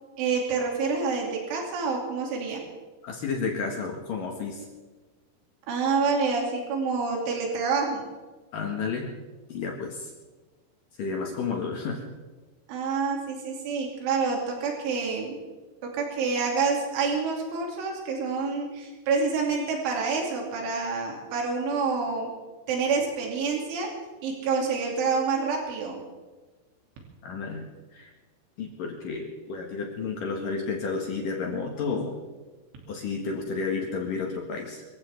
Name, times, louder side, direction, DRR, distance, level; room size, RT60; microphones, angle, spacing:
voice 1, 0.2-2.7 5.7-8.0 12.7-15.4 15.8-22.3 22.7-23.9 24.2-26.0, right 4 dB, 75° right, 0 dB, 5.2 m, -27 dB
voice 2, 3.0-4.7 8.5-9.1 9.5-10.1 11.0-12.0 27.2-28.1 28.6-32.1 32.9-34.8, left 4 dB, 60° left, 0 dB, 2.7 m, -31 dB
26.0 x 15.5 x 3.6 m, 1.2 s
omnidirectional pair, 5.6 m